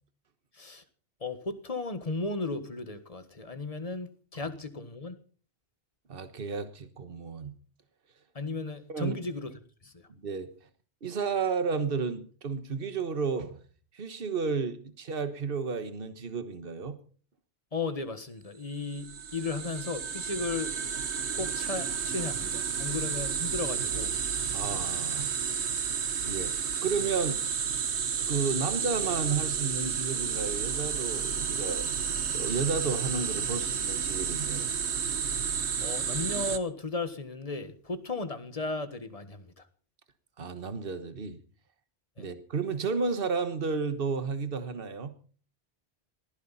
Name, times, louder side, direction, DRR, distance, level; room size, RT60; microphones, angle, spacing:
voice 1, 1.2-5.2 8.3-10.0 17.7-21.0 21.3-24.1 25.6-25.8 35.8-39.7 42.2-42.3, left 3 dB, 35° left, 1.5 m, -35 dB
voice 2, 6.1-7.5 8.9-9.2 10.2-10.5 11.0-13.6 13.9-17.0 24.5-25.3 26.2-26.5 26.8-27.4 28.3-31.9 32.3-34.7 40.4-41.4 42.2-45.1, right 5 dB, 60° right, 1.5 m, -32 dB
sound 1, 18.8-36.6, right 7 dB, 90° right, 1.4 m, -31 dB
20.0 x 15.0 x 4.2 m
omnidirectional pair, 1.1 m